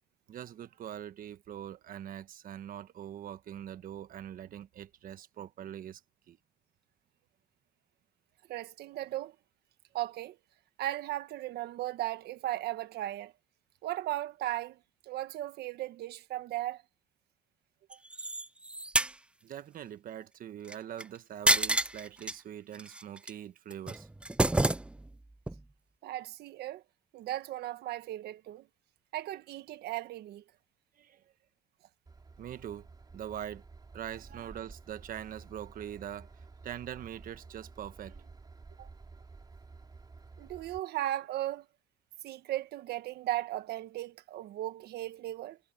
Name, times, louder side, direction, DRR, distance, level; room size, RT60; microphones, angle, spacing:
voice 1, 0.3-6.0 6.3-6.4 19.4-24.1 31.0-31.2 32.4-32.9 33.1-33.6 33.9-38.3, right 10 dB, 55° right, 1.3 m, -43 dB
voice 2, 8.5-9.3 9.9-10.4 10.8-13.3 13.8-16.8 17.9-18.0 26.0-26.8 27.1-28.7 29.1-30.4 38.8-38.9 40.4-41.7 42.2-45.6, right 14 dB, 75° right, 1.4 m, -36 dB
sound 1, 17.9-19.1 20.7-21.0 21.5-22.3 22.8-23.3 23.7-25.2 25.5-25.6, right 2 dB, 5° right, 0.4 m, -29 dB
Train / Engine, 32.1-40.8, right 4 dB, 25° right, 5.0 m, -52 dB
cardioid pair, 110°, 17 cm